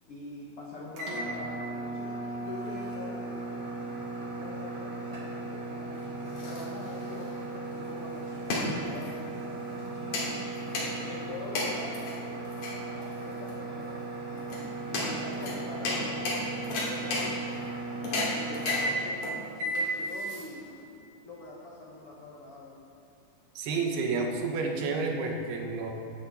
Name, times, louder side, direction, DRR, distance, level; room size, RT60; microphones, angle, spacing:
voice 1, 0.1-3.5 4.1-6.0 6.4-9.4 11.0-14.5 14.9-17.6 18.3-20.7 21.2-22.8, left 2 dB, 80° left, -4 dB, 1.3 m, -44 dB
sound 1, 0.9-19.2 19.6-19.9, right 2 dB, 45° right, 1.8 m, -36 dB
sound 2, 5.9-20.9, left 2 dB, 50° left, 3.9 m, -36 dB
voice 2, 23.6-25.9, right 4 dB, 75° right, 2 dB, 3.0 m, -30 dB
15.5 x 11.0 x 4.2 m, 2.5 s
omnidirectional pair, 4.9 m